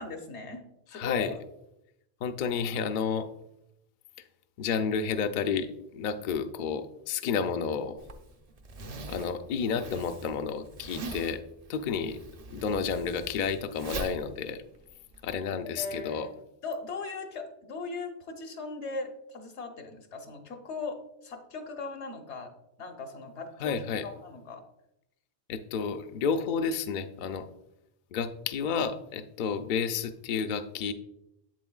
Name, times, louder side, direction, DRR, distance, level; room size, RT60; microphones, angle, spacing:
voice 1, 0.0-1.4 15.8-16.3 16.6-22.5 22.8-24.6, left 3 dB, 75° left, 5 dB, 1.2 m, -38 dB
voice 2, 0.9-1.3 2.2-3.3 4.6-8.0 9.1-11.4 11.7-12.2 12.5-14.6 15.2-16.3 23.6-24.0 25.5-27.5 28.1-30.9, left 6 dB, 60° left, 8 dB, 0.5 m, -31 dB
Zipper (clothing), 8.0-15.4, right 3 dB, 45° right, 0.5 m, -42 dB
7.8 x 7.4 x 2.3 m, 0.82 s
omnidirectional pair, 1.2 m